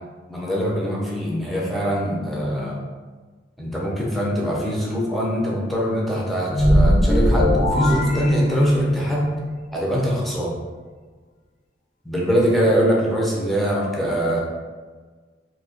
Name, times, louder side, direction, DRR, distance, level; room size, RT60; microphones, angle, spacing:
voice 1, 0.3-2.8 3.6-9.3 9.7-10.5 12.0-14.4, equal, ahead, -5 dB, 0.6 m, -22 dB
sound 1, 6.5-9.1, equal, 40° left, 0.5 m, -19 dB
2.7 x 2.3 x 4.2 m, 1.4 s
head